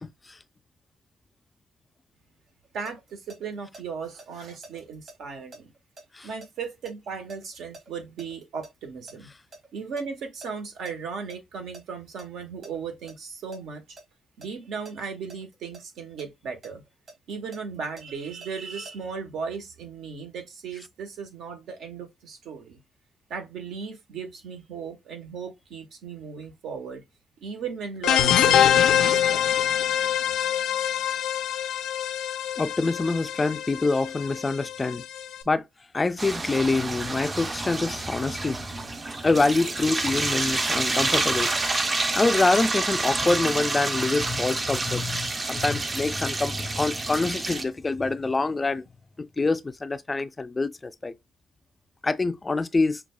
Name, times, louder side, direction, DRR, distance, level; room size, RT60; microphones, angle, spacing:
voice 1, 0.0-0.4 6.1-6.3 32.6-35.0 35.5-35.7 35.9-38.7 39.2-41.5 42.1-48.8 49.2-51.1 52.0-53.0, left 3 dB, 25° left, 0.3 m, -25 dB
sound 1, 2.5-3.8 4.2-8.8 9.1-10.9 11.3-11.4 11.7-13.2 13.5-14.0 14.4-16.3 16.6-18.9, right 2 dB, 55° right, 2.5 m, -48 dB
voice 2, 2.7-5.7 6.2-9.3 9.7-13.8 14.4-16.8 17.3-22.8 23.3-27.0 27.4-29.4, right 5 dB, 80° right, 1.0 m, -36 dB
sound 2, 28.0-35.4, left 10 dB, 85° left, 0.5 m, -24 dB
sound 3, 36.2-47.6, right 3 dB, 30° right, 0.5 m, -28 dB
5.9 x 2.3 x 2.2 m
cardioid pair, 90°, 0 cm